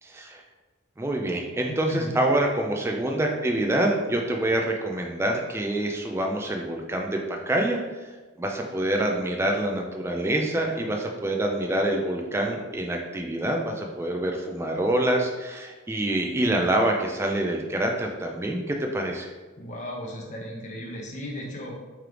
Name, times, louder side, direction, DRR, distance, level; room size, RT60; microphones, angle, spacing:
voice 1, 0.0-0.4 1.0-7.8 8.4-19.3, right 1 dB, 10° right, 1 dB, 0.3 m, -26 dB
voice 2, 1.7-2.1 19.6-21.8, left 1 dB, 35° left, -1 dB, 0.6 m, -36 dB
3.3 x 3.0 x 3.7 m, 1.3 s
head